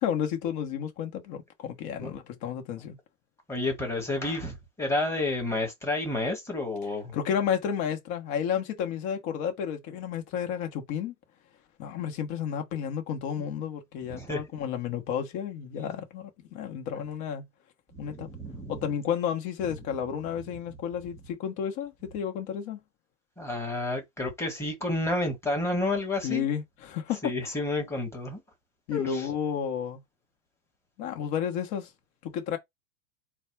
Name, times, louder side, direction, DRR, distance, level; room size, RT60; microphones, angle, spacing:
voice 1, 0.0-3.0 7.1-11.1 11.8-17.5 18.0-18.3 18.7-22.8 26.2-27.5 28.9-30.0 31.0-31.9 32.2-32.6, left 8 dB, 45° left, 1.3 m, -32 dB
voice 2, 3.5-7.2 14.1-14.4 17.9-18.8 23.4-26.4 27.2-28.4 28.9-29.2, left 2 dB, 5° left, 1.4 m, -30 dB
4.1 x 2.3 x 4.5 m
supercardioid pair, 140°, 42 cm